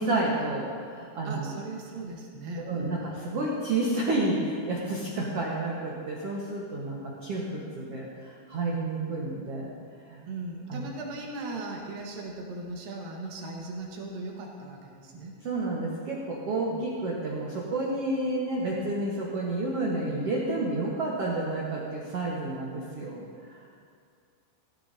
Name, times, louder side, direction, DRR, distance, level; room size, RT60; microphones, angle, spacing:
voice 1, 0.0-1.5 2.6-9.7 10.1-10.2 10.7-10.9 15.4-23.6, right 2 dB, 85° right, -4 dB, 1.3 m, -30 dB
voice 2, 1.2-3.1 10.3-15.4 16.7-16.8, right 2 dB, 65° right, -1 dB, 2.8 m, -38 dB
15.5 x 15.0 x 2.7 m, 2.2 s
omnidirectional pair, 4.9 m